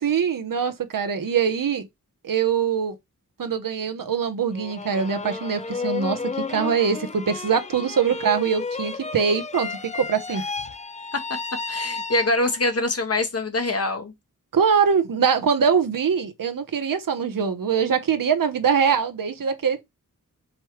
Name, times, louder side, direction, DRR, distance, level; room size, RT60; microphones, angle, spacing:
voice 1, 0.0-1.9 2.2-2.9 3.4-10.4 14.5-19.8, right 6 dB, 80° right, 0.9 m, -23 dB
sound 1, 4.5-12.7, left 4 dB, 20° left, 0.4 m, -32 dB
voice 2, 11.7-14.1, left 2 dB, 45° left, 1.0 m, -24 dB
5.2 x 3.2 x 3.0 m
wide cardioid pair, 75°, 33 cm